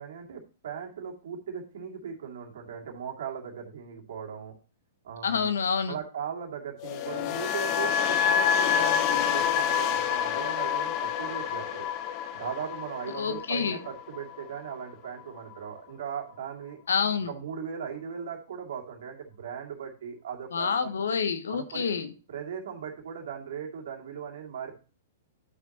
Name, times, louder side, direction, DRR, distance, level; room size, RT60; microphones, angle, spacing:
voice 1, 0.0-4.5 5.0-5.5 5.9-11.9 12.3-16.8 17.3-20.9 21.5-21.9 22.3-24.8, right 7 dB, 65° right, 1 dB, 2.5 m, -38 dB
voice 2, 5.2-5.9 13.1-13.8 16.9-17.3 20.5-22.1, left 6 dB, 75° left, 10 dB, 1.0 m, -28 dB
sound 1, 6.8-14.9 15.2-15.5, left 8 dB, 40° left, 0.8 m, -28 dB
11.5 x 6.1 x 3.0 m, 0.36 s
hypercardioid pair, 115°, 0 cm